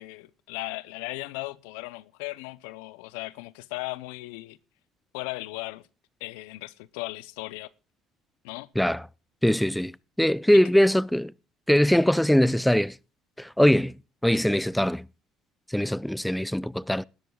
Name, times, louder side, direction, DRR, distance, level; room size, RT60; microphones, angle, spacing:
voice 1, 0.0-4.6 5.1-5.8 6.2-7.7 8.4-8.7, left 21 dB, 85° left, 0.6 m, -37 dB
voice 2, 9.4-9.9 10.2-11.3 11.7-12.9 13.4-13.9 14.2-15.0 15.7-17.1, equal, 5° left, 0.5 m, -21 dB
19.0 x 12.5 x 2.3 m
supercardioid pair, 70°, 0 cm